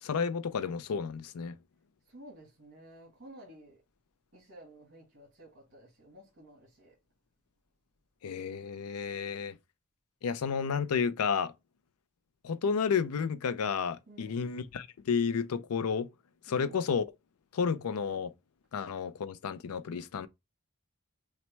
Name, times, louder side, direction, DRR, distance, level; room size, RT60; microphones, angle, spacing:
voice 1, 0.0-1.6 8.2-9.5 10.2-11.5 12.4-16.1 16.5-17.0 17.5-18.3 18.7-20.3, left 6 dB, 85° left, 0.4 m, -31 dB
voice 2, 2.0-3.8 4.3-6.9 14.1-14.6 16.5-16.8, right 1 dB, 50° right, 1.6 m, -53 dB
5.8 x 2.2 x 3.1 m
head